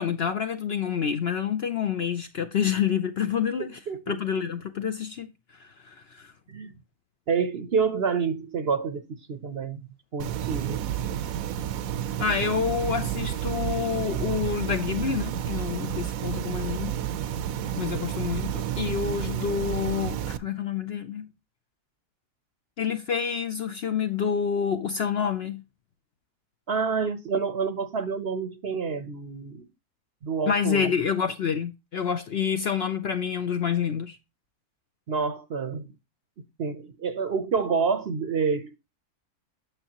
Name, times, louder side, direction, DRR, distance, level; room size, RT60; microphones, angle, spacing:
voice 1, 0.0-3.8 4.1-5.3 5.6-6.3 12.2-17.0 17.8-21.3 22.8-25.6 30.5-34.2, left 7 dB, 55° left, 0.7 m, -28 dB
voice 2, 3.9-4.2 6.5-6.7 7.3-9.8 10.1-10.8 26.7-29.7 30.2-30.9 35.1-35.9 36.6-38.8, right 5 dB, 50° right, 0.8 m, -28 dB
sound 1, 10.2-20.4, right 10 dB, 70° right, 1.0 m, -30 dB
9.0 x 6.6 x 2.9 m
omnidirectional pair, 1.6 m